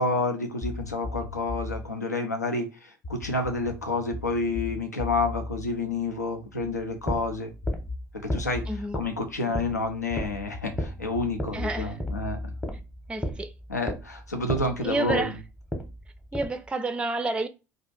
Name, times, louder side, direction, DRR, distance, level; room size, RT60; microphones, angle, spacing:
voice 1, 0.0-7.5 8.2-8.7 8.9-12.5 13.7-15.4, left 2 dB, 85° left, 0.5 m, -29 dB
sound 1, 0.6-1.9 3.0-6.7 7.6-8.9 9.6-13.6, left 2 dB, 40° left, 0.6 m, -37 dB
sound 2, 6.6-16.7, equal, 5° left, 0.8 m, -34 dB
voice 2, 8.7-9.0 11.5-12.0 13.1-13.5 14.8-15.4 16.3-17.5, right 2 dB, 10° right, 0.4 m, -29 dB
2.5 x 2.4 x 3.8 m
figure-of-eight pair, 60°, 9 cm